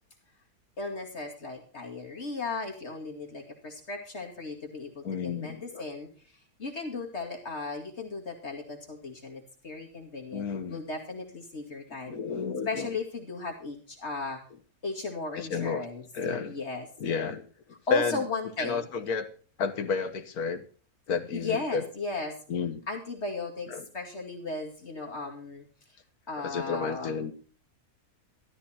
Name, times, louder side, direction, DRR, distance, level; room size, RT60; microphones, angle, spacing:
voice 1, 0.8-6.1 6.6-12.2 12.7-14.4 14.8-16.0 16.5-16.9 17.9-18.9 21.3-22.3 22.9-25.7 26.3-27.1, left 3 dB, 45° left, 1 dB, 2.5 m, -35 dB
voice 2, 5.0-5.8 10.3-10.8 12.1-12.9 15.4-15.8 16.1-16.5 17.0-17.4 17.9-18.2 18.6-19.3 19.6-20.6 21.1-21.8 22.5-22.8 23.7-23.8 26.4-27.3, left 5 dB, 70° left, 7 dB, 1.8 m, -31 dB
13.5 x 12.5 x 4.3 m, 0.40 s
omnidirectional pair, 1.7 m